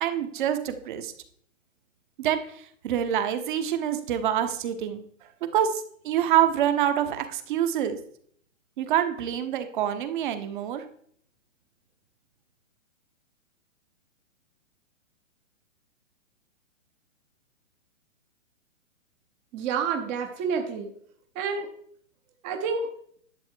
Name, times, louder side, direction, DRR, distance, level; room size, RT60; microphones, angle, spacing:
voice 1, 0.0-1.1 2.2-5.0 5.5-8.0 8.8-10.8, right 10 dB, 40° right, 9 dB, 1.2 m, -26 dB
voice 2, 19.5-20.9 21.3-21.7 22.4-22.9, right 6 dB, 20° right, 5 dB, 0.9 m, -28 dB
11.5 x 7.8 x 4.6 m, 0.63 s
hypercardioid pair, 155°, 39 cm